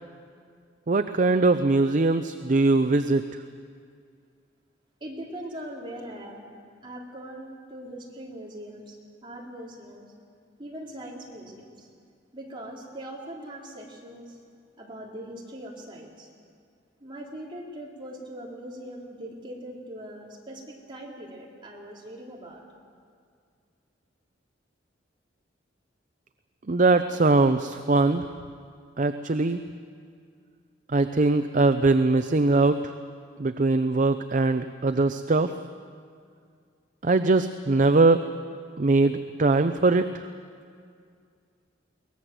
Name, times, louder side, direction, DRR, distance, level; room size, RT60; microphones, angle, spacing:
voice 1, 0.9-3.3 26.7-28.3 29.0-29.6 30.9-32.9 33.4-35.5 37.0-38.2 38.8-40.2, right 3 dB, 45° right, 9 dB, 0.6 m, -21 dB
voice 2, 5.0-6.5 6.8-10.1 10.6-11.9 12.3-14.4 14.8-16.3 17.0-22.6, right 1 dB, 25° right, -3 dB, 3.8 m, -41 dB
22.5 x 19.5 x 7.7 m, 2.2 s
head